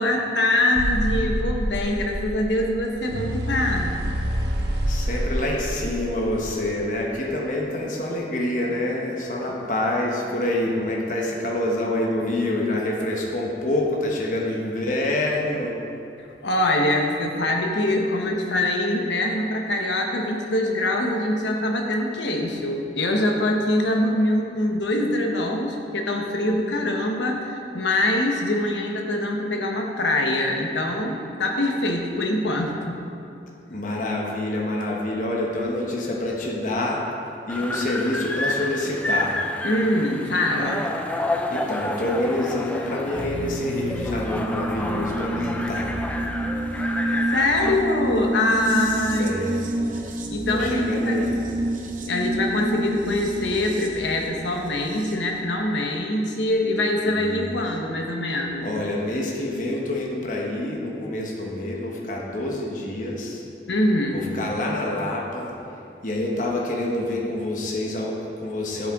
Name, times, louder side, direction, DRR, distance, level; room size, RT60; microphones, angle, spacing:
voice 1, 0.0-3.9 16.4-33.0 39.6-40.9 47.3-49.4 50.3-51.4 52.0-58.7 63.7-64.2, left 1 dB, 85° left, 1 dB, 1.1 m, -24 dB
sound 1, 0.7-6.8, equal, 75° right, 0.9 m, -27 dB
voice 2, 4.9-15.7 33.7-37.0 37.5-39.4 41.5-46.0 48.7-49.6 50.5-51.3 57.0-57.5 58.6-63.4 64.1-65.5 66.0-68.9, left 1 dB, 45° left, -2 dB, 1.1 m, -27 dB
sound 2, 37.5-47.7, left 1 dB, 5° left, 0.4 m, -30 dB
sound 3, 43.1-55.1, right 1 dB, 45° right, 0.8 m, -29 dB
11.5 x 7.4 x 3.6 m, 2.7 s
head